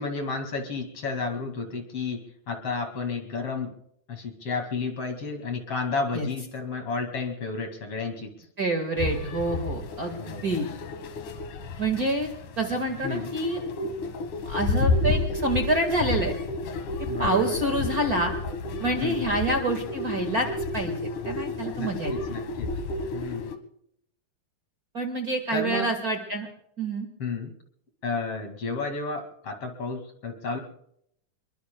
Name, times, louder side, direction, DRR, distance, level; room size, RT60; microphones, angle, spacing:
voice 1, 0.0-3.7 4.1-8.3 10.2-10.5 13.0-13.3 17.1-17.6 19.0-19.3 21.8-22.7 23.1-23.5 25.5-25.9 27.2-27.5 28.0-30.6, left 4 dB, 50° left, 5 dB, 3.1 m, -32 dB
voice 2, 8.6-10.7 11.8-12.3 12.6-13.6 14.5-16.3 17.2-18.3 18.8-20.5 20.7-22.1 24.9-26.5 26.8-27.1, right 2 dB, 35° right, 4 dB, 1.9 m, -27 dB
sound 1, 9.0-23.6, left 3 dB, 85° left, 2.9 m, -31 dB
26.5 x 23.0 x 2.3 m, 0.70 s
omnidirectional pair, 3.4 m